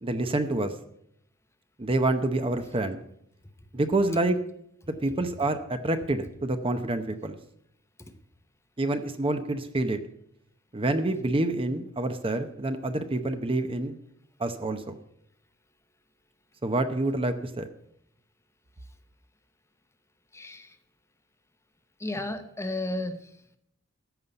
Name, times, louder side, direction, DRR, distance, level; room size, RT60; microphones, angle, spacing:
voice 1, 0.0-0.7 1.8-3.0 3.7-4.4 5.0-7.4 8.8-10.0 10.7-14.0 14.4-14.9 16.6-17.7, right 2 dB, 25° right, 8 dB, 0.8 m, -27 dB
voice 2, 20.3-20.8 22.0-23.3, left 2 dB, 15° left, 9 dB, 0.9 m, -33 dB
14.0 x 5.6 x 7.8 m, 0.72 s
head